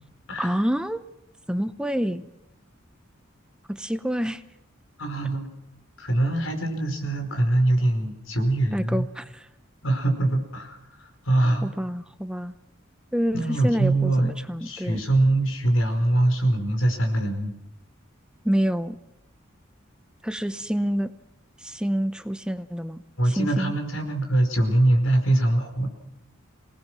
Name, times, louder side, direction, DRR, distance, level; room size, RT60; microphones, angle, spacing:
voice 1, 0.4-1.0 1.5-2.3 3.7-4.4 8.7-9.5 11.6-12.5 13.1-15.0 18.4-19.0 20.2-21.1 21.6-23.7, equal, 5° right, 11 dB, 0.7 m, -27 dB
voice 2, 5.0-5.5 6.0-9.0 9.8-11.7 13.3-14.3 14.6-17.5 23.2-25.9, right 1 dB, 80° left, 5 dB, 4.9 m, -23 dB
26.5 x 19.0 x 6.1 m, 0.90 s
head